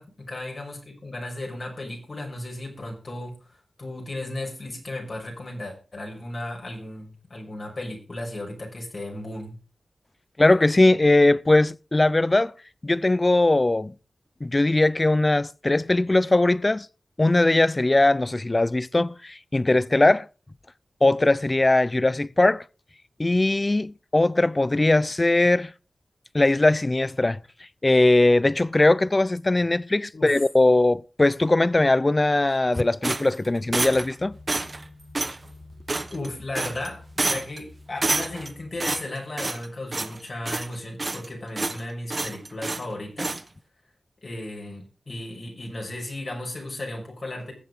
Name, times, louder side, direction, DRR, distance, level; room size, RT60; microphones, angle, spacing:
voice 1, 0.0-3.3 3.8-9.6 30.1-30.4 36.1-43.4 44.2-47.5, left 1 dB, 60° left, 6.1 m, -35 dB
voice 2, 10.4-12.5 12.8-13.9 14.4-16.9 17.2-20.3 21.0-22.6 23.2-25.7 26.3-27.4 27.8-34.3, left 2 dB, 35° left, 0.6 m, -20 dB
sound 1, 33.0-34.1 34.5-34.8 35.1-35.4 35.9-36.3 36.5-36.9 37.2-37.6 38.0-38.5 38.8-39.7 39.9-40.2 40.5-41.3 41.6-41.8 42.1-42.9 43.2-43.4, right 3 dB, 45° right, 1.3 m, -28 dB
sound 2, 33.7-38.9, left 2 dB, 85° left, 3.1 m, -48 dB
21.0 x 7.2 x 3.7 m
cardioid pair, 50°, 0 cm